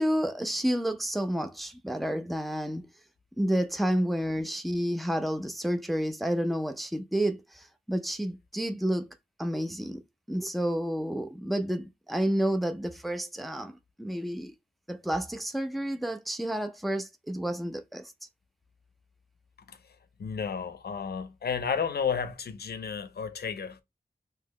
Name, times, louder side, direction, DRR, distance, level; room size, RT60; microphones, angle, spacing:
voice 1, 0.0-2.9 3.4-10.0 10.3-14.5 14.9-18.1, equal, ahead, 0.4 m, -30 dB
voice 2, 20.2-23.8, left 6 dB, 80° left, 0.5 m, -32 dB
2.8 x 2.0 x 3.7 m
wide cardioid pair, 90°, 16 cm